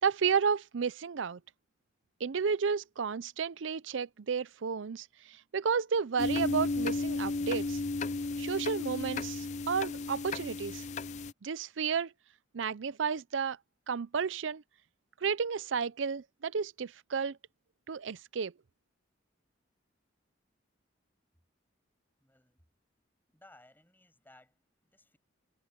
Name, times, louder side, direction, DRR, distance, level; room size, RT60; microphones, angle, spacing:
voice 1, 0.0-1.4 2.2-7.8 8.4-10.8 11.4-12.1 12.5-13.6 13.9-14.6 15.2-17.4 17.9-18.5, right 6 dB, 75° right, 0.5 m, -32 dB
sound 1, 6.2-11.3, left 3 dB, 35° left, 0.4 m, -34 dB
voice 2, 22.2-22.7 23.3-25.2, left 1 dB, 10° left, 7.2 m, -61 dB
head